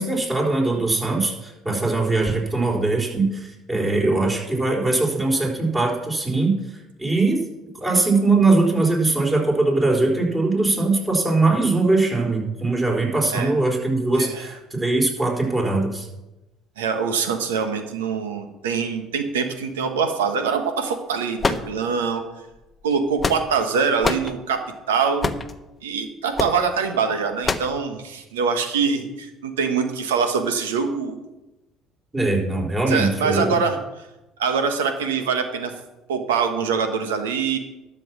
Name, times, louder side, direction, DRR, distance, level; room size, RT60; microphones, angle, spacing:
voice 1, 0.0-6.6 7.0-7.4 7.8-16.1 32.1-33.6, right 3 dB, 20° right, 0 dB, 4.1 m, -21 dB
voice 2, 16.8-22.2 22.8-25.3 25.8-31.2 32.9-33.8 34.4-35.7 36.1-37.6, right 5 dB, 90° right, 7 dB, 1.4 m, -24 dB
sound 1, 21.4-22.2 22.9-23.7 24.0-24.3 25.2-25.5 26.4-26.6 27.4-27.8, left 4 dB, 25° left, 0.9 m, -25 dB
12.0 x 6.0 x 7.4 m, 0.98 s
hypercardioid pair, 70°, 0 cm